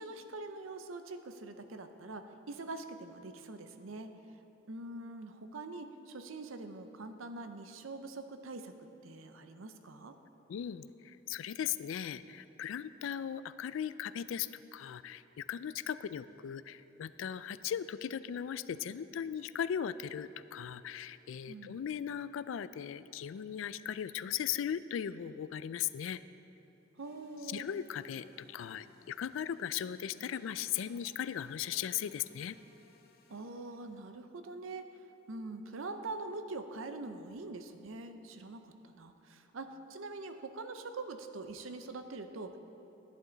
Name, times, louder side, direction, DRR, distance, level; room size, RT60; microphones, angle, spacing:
voice 1, 0.0-4.1 4.7-8.7 9.0-10.1 21.5-21.8 27.0-27.7 33.3-34.9 35.3-42.6, right 3 dB, 90° right, 8 dB, 0.7 m, -44 dB
voice 2, 10.5-26.2 27.5-32.6, left 9 dB, 80° left, 16 dB, 0.3 m, -38 dB
sound 1, 27.0-34.1, left 3 dB, 50° left, 0.8 m, -64 dB
11.0 x 11.0 x 4.0 m, 3.0 s
head